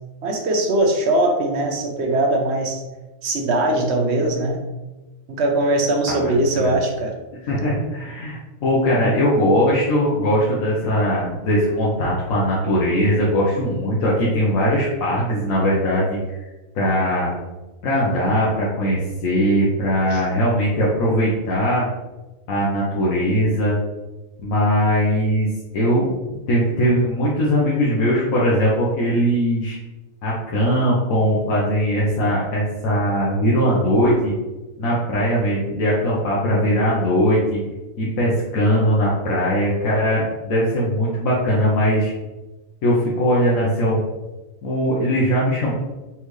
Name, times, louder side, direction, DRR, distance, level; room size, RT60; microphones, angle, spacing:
voice 1, 0.2-2.8 3.2-4.6 5.3-7.1 20.1-20.2, right 1 dB, 60° right, 2 dB, 0.9 m, -20 dB
voice 2, 6.1-6.7 7.5-16.2 16.7-17.4 17.8-21.9 22.5-23.8 24.4-25.5 25.7-26.1 26.5-29.8 30.2-34.3 34.8-37.6 38.0-42.1 42.8-44.0 44.6-45.7, equal, 85° left, -6 dB, 1.3 m, -20 dB
4.3 x 3.4 x 3.1 m, 1.1 s
omnidirectional pair, 1.4 m